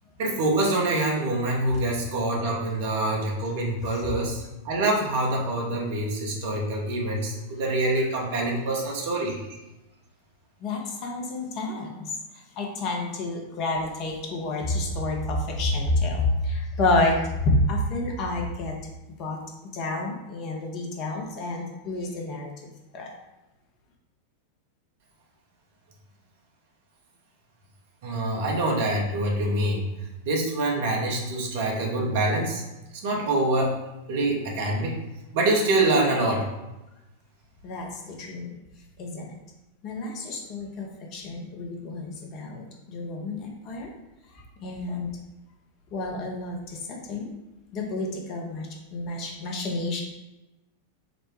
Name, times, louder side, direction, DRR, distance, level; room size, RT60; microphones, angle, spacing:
voice 1, 0.2-9.4 28.0-29.8 30.2-32.6 33.0-33.8 34.1-35.0 35.3-36.4, right 2 dB, 50° right, -1 dB, 0.9 m, -25 dB
voice 2, 10.6-18.8 19.2-19.4 19.7-22.5 22.9-23.1 37.6-38.5 39.0-39.3 39.8-43.9 44.3-45.1 45.9-47.3 47.7-50.0, left 2 dB, 40° left, 1 dB, 0.8 m, -29 dB
4.0 x 2.2 x 4.5 m, 0.99 s
figure-of-eight pair, 90°, 0 cm